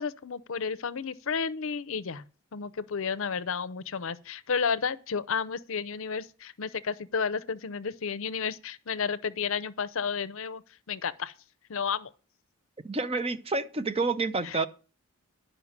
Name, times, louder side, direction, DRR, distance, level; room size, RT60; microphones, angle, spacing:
voice 1, 0.0-2.2 2.5-10.6 10.9-11.3 11.7-12.1 14.4-14.7, left 6 dB, 60° left, 0.6 m, -32 dB
voice 2, 12.8-14.7, right 3 dB, 25° right, 0.6 m, -29 dB
11.0 x 5.7 x 7.2 m
head